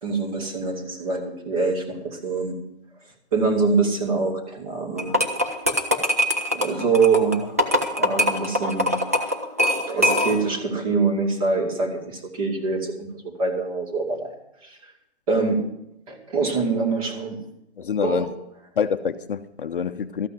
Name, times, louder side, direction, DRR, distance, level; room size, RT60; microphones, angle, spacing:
voice 1, 0.0-2.6 3.3-5.2 6.5-9.0 9.9-14.3 14.6-14.8 15.3-15.6 16.1-17.4 18.0-18.3, right 4 dB, 30° right, 2.5 m, -24 dB
sound 1, 5.0-10.6, equal, 15° right, 0.4 m, -23 dB
voice 2, 17.8-18.3 18.8-20.3, left 7 dB, 55° left, 0.6 m, -26 dB
13.5 x 6.1 x 9.0 m
hypercardioid pair, 170°, 33 cm